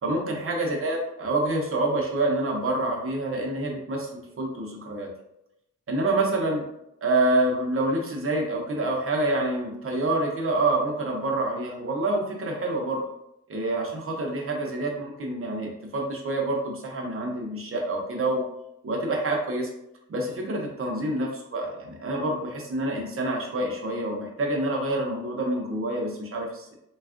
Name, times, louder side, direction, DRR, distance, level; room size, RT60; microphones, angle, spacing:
voice 1, 0.0-4.1 4.4-5.1 5.9-6.6 7.0-13.0 13.5-18.4 18.8-19.7 20.1-26.7, right 2 dB, 45° right, 0 dB, 0.6 m, -27 dB
3.3 x 2.3 x 2.4 m, 0.82 s
wide cardioid pair, 160°, 30 cm